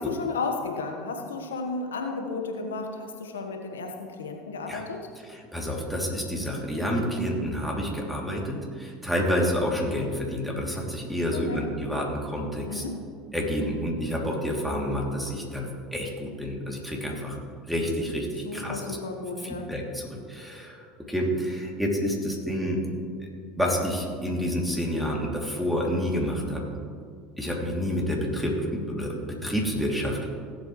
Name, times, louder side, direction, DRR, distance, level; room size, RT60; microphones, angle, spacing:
voice 1, 0.0-5.1 11.3-11.6 12.7-13.0 18.4-19.7, left 4 dB, 90° left, 3 dB, 1.3 m, -33 dB
voice 2, 5.3-12.8 13.3-17.4 17.6-18.8 19.4-22.8 23.2-23.3 23.6-26.6 27.4-30.3, equal, ahead, -2 dB, 2.8 m, -29 dB
17.5 x 8.2 x 3.2 m, 2.1 s
hypercardioid pair, 80°, 0 cm